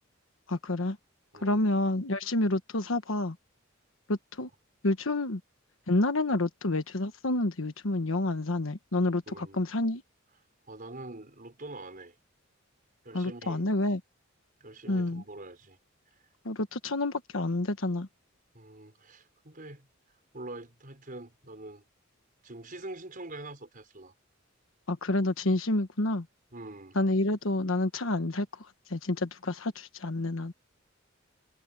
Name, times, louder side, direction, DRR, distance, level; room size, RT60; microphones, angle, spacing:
voice 1, 0.5-1.0 1.4-3.4 4.1-4.5 4.8-5.4 5.9-10.0 13.1-14.0 14.9-15.2 16.4-18.1 24.9-26.3 26.9-30.5, left 2 dB, 85° left, 1.2 m, -29 dB
voice 2, 1.3-1.6 9.3-9.6 10.7-12.1 13.0-13.6 14.6-15.8 18.5-19.9 20.3-21.8 22.4-24.1 26.5-27.0, right 2 dB, 45° right, 5.9 m, -44 dB
head